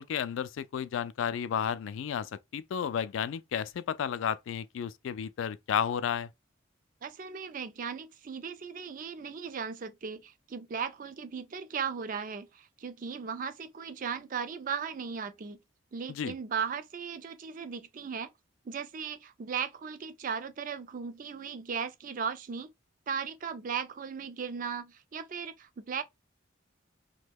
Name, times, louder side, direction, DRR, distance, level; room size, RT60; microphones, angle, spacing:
voice 1, 0.0-6.3 16.1-16.3, left 8 dB, 70° left, 0.3 m, -32 dB
voice 2, 7.0-15.6 15.9-18.3 18.7-22.7 23.1-26.0, right 6 dB, 40° right, 0.3 m, -37 dB
2.9 x 2.1 x 3.3 m
head